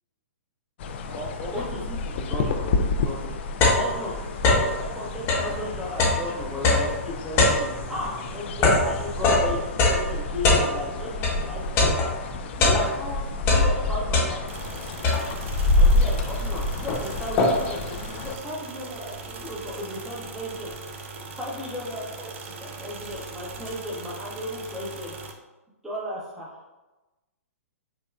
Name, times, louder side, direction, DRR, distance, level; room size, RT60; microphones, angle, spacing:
sound 1, 0.8-18.4, left 2 dB, 50° left, 0.3 m, -28 dB
voice 1, 1.1-3.3 3.7-4.2 4.5-11.9 12.5-13.2 13.5-14.4 15.8-20.7 21.4-25.1 25.8-26.6, left 1 dB, 5° right, -6 dB, 0.7 m, -35 dB
sound 2, 2.7-2.8 3.2-4.8 5.2-11.4 11.8-13.1 13.4-14.7 15.0-15.6 16.2-16.3 16.6-17.8, left 2 dB, 30° left, 0.9 m, -22 dB
sound 3, 14.5-25.3, right 4 dB, 50° right, 0.5 m, -40 dB
5.3 x 2.2 x 2.4 m, 1.1 s
figure-of-eight pair, 120°, 8 cm